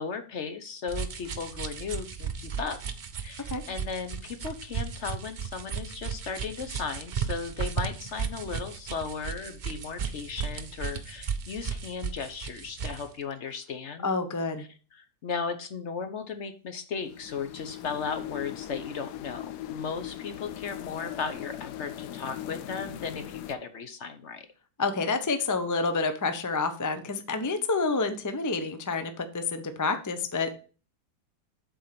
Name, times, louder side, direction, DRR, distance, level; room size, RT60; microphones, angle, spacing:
voice 1, 0.0-2.8 3.2-14.1 14.6-24.5, left 5 dB, 50° left, 8 dB, 1.0 m, -36 dB
sound 1, 0.9-13.1, right 6 dB, 55° right, 0.5 m, -35 dB
voice 2, 14.0-14.6 24.8-30.6, left 3 dB, 25° left, 8 dB, 0.4 m, -28 dB
sound 2, 17.0-23.5, left 13 dB, 80° left, 1.2 m, -40 dB
7.7 x 4.3 x 6.7 m, 0.38 s
omnidirectional pair, 1.7 m